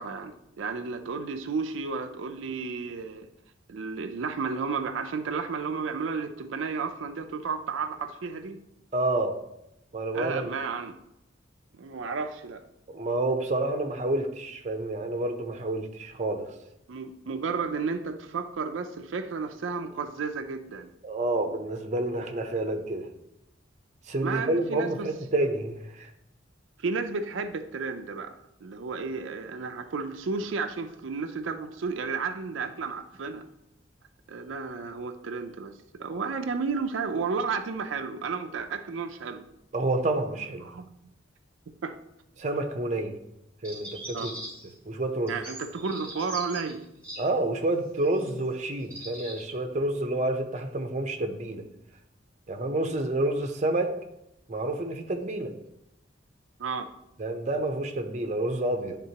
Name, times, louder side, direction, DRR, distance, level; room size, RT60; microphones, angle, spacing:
voice 1, 0.0-3.3 3.7-8.6 10.1-11.0 11.8-12.6 16.9-20.9 24.2-25.1 26.8-33.5 34.3-39.4 40.6-40.9 41.8-42.0 44.1-44.4 45.3-46.9 56.6-56.9, right 4 dB, 90° right, 6 dB, 0.5 m, -32 dB
voice 2, 8.9-9.3 9.9-10.5 12.9-16.5 21.0-23.1 24.1-26.1 39.7-40.7 42.4-43.2 43.6-44.3 44.9-45.3 47.2-51.6 52.5-53.9 54.5-55.5 57.2-59.0, right 2 dB, 40° right, 5 dB, 0.7 m, -29 dB
sound 1, 43.6-44.8 45.3-47.2 48.0-48.3 48.8-49.4, right 1 dB, 5° left, 1.9 m, -41 dB
10.5 x 3.6 x 2.9 m, 0.83 s
head